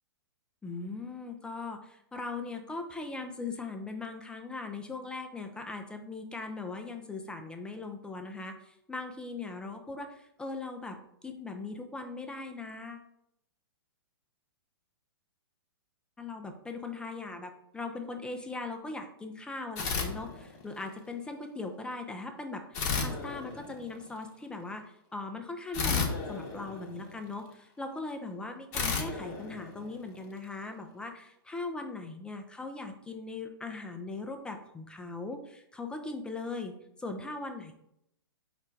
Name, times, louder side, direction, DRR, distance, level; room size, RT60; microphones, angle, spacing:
voice 1, 0.6-11.0 11.2-13.1 16.2-24.8 25.1-36.7 37.0-37.7, left 3 dB, 5° left, 6 dB, 0.3 m, -39 dB
sound 1, 19.8-20.9 22.7-24.1 25.7-27.4 28.7-30.3, left 5 dB, 35° left, 0.8 m, -33 dB
4.8 x 2.2 x 4.4 m, 0.76 s
figure-of-eight pair, 110°, 13 cm